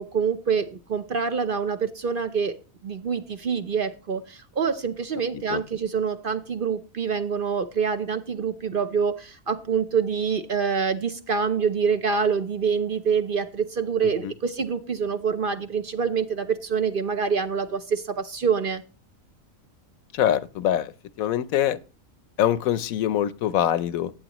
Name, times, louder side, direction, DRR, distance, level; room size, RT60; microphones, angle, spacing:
voice 1, 0.0-2.6 2.8-18.8, right 6 dB, 50° right, 0.8 m, -26 dB
voice 2, 20.1-20.9 21.2-21.8 22.4-24.1, left 11 dB, 80° left, 1.1 m, -24 dB
15.0 x 9.4 x 3.0 m
omnidirectional pair, 1.4 m